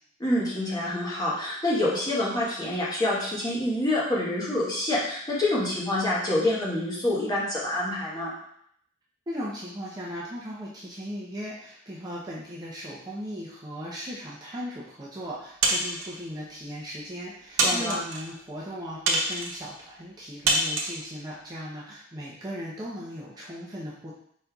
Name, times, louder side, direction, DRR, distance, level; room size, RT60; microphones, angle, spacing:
voice 1, 0.2-8.3 17.6-18.0, left 1 dB, 20° left, -6 dB, 1.2 m, -27 dB
voice 2, 9.3-24.1, equal, 20° right, -6 dB, 0.7 m, -37 dB
sound 1, 15.6-16.2 16.9-17.0 17.6-18.2 19.1-19.6 20.5-21.0, right 2 dB, 80° right, 0.9 m, -25 dB
5.2 x 4.2 x 2.3 m, 0.68 s
head